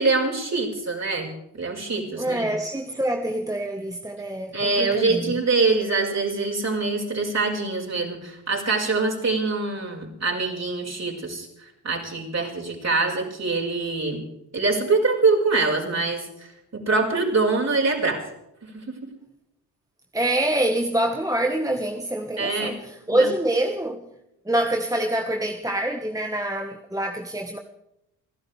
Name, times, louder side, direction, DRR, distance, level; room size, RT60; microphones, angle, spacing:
voice 1, 0.0-2.5 4.5-11.5 11.8-14.2 14.5-18.2 18.6-18.9 22.4-22.7 23.1-23.3, right 3 dB, 35° right, 5.4 m, -24 dB
voice 2, 2.1-5.4 20.1-24.1 24.4-27.6, right 1 dB, 5° right, 1.4 m, -26 dB
29.5 x 12.0 x 3.5 m
hypercardioid pair, 50°, 46 cm